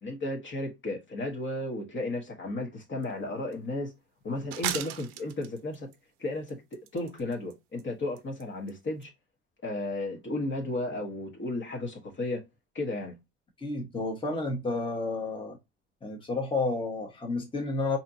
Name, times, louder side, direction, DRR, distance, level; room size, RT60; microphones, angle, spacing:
voice 1, 0.0-3.9 4.2-5.9 6.2-9.1 9.6-12.4 12.7-13.2, left 2 dB, 35° left, 1.2 m, -34 dB
sound 1, 3.0-3.1 3.5-3.6 4.5-6.0 6.5-7.5 7.8-7.9 8.2-8.4 8.7-8.8 9.0-9.1, right 12 dB, 90° right, 0.6 m, -36 dB
voice 2, 13.6-15.6 16.0-18.0, left 3 dB, 15° left, 1.2 m, -31 dB
4.2 x 2.8 x 2.6 m
supercardioid pair, 90°, 35 cm